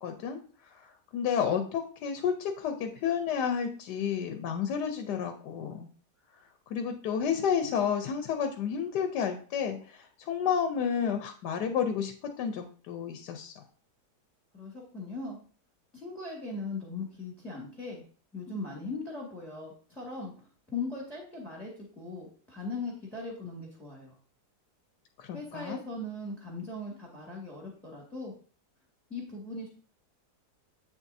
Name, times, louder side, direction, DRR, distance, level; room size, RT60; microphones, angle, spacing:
voice 1, 0.0-5.9 6.7-13.6 25.2-25.8, left 7 dB, 80° left, 6 dB, 1.3 m, -31 dB
voice 2, 14.5-15.4 15.9-18.0 18.3-20.3 20.7-24.2 25.3-28.3 29.1-29.7, left 3 dB, ahead, -2 dB, 1.7 m, -39 dB
8.4 x 7.2 x 2.7 m, 0.42 s
omnidirectional pair, 1.8 m